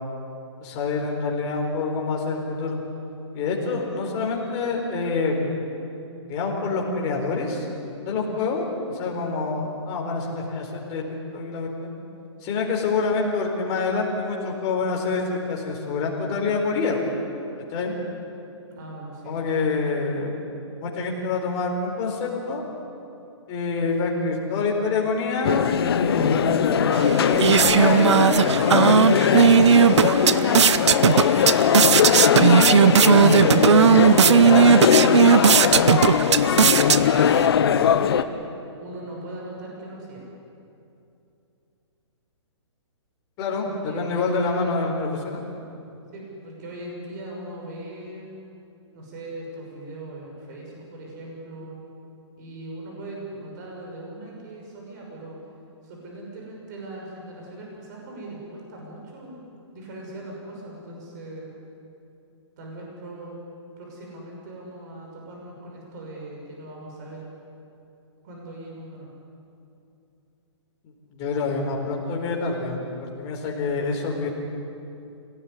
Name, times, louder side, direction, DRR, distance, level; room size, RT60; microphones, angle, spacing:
voice 1, 0.6-2.8 3.3-5.6 6.3-7.7 8.0-8.7 9.0-11.0 11.3-11.9 12.4-17.0 17.7-17.9 19.2-20.4 20.8-22.6 23.5-31.1 33.0-33.4 43.4-45.4 71.1-74.3, left 4 dB, 25° left, -1 dB, 4.3 m, -26 dB
voice 2, 18.7-19.4 32.4-35.9 36.5-40.2 43.6-45.0 46.1-48.3 48.9-51.8 52.4-55.4 55.8-59.4 59.7-61.5 62.6-63.4 63.8-67.2 68.2-69.1, right 1 dB, 35° right, -1 dB, 6.2 m, -39 dB
sound 1, 25.4-38.2, left 8 dB, 55° left, 1.2 m, -20 dB
sound 2, 26.9-37.5, right 7 dB, 70° right, 0.9 m, -17 dB
26.5 x 18.0 x 10.0 m, 2.7 s
hypercardioid pair, 160°, 15 cm